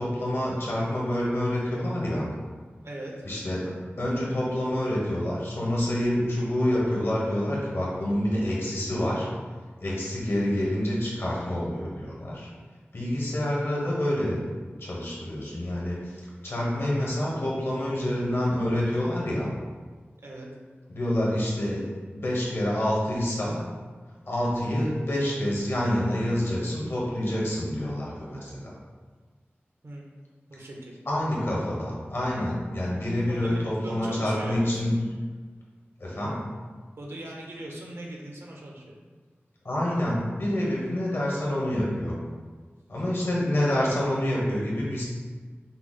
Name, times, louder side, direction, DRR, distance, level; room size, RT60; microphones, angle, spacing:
voice 1, 0.0-2.2 3.2-3.7 4.0-9.3 9.8-12.5 12.9-14.4 14.8-19.5 20.9-21.8 22.1-23.6 24.3-28.7 31.0-34.9 36.0-36.4 39.6-42.1 42.9-45.0, left 1 dB, 70° left, -5 dB, 1.4 m, -27 dB
voice 2, 2.8-3.2 20.2-20.5 29.8-30.0 30.5-31.0 33.3-34.8 37.0-39.0, right 1 dB, 80° right, -2 dB, 0.9 m, -39 dB
5.6 x 2.1 x 4.1 m, 1.5 s
wide cardioid pair, 75°, 4 cm